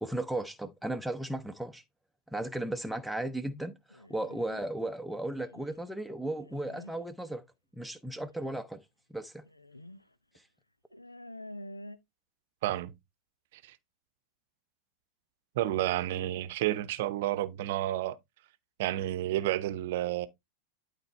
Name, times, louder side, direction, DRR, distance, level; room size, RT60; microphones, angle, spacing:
voice 1, 0.0-1.8 2.3-7.4 7.7-8.8 9.1-9.4, right 1 dB, ahead, 0.8 m, -35 dB
sound 1, 3.9-4.6 5.3-5.8 6.4-6.9 8.2-8.3 9.4-10.0 10.3-10.4 10.9-12.0, left 1 dB, 85° left, 0.8 m, -47 dB
voice 2, 15.6-18.2 18.8-20.3, right 14 dB, 50° right, 0.8 m, -30 dB
11.5 x 4.3 x 3.2 m
figure-of-eight pair, 90°, 0 cm